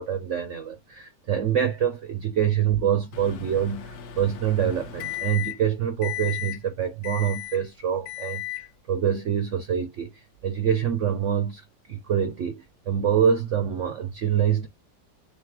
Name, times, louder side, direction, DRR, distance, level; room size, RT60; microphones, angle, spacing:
voice 1, 0.0-14.7, right 8 dB, 75° right, 0.7 m, -26 dB
Microwave oven, 3.1-5.7 6.0-6.6 7.0-7.6 8.1-8.7, left 13 dB, 65° left, 1.1 m, -35 dB
3.5 x 3.2 x 3.6 m
omnidirectional pair, 1.9 m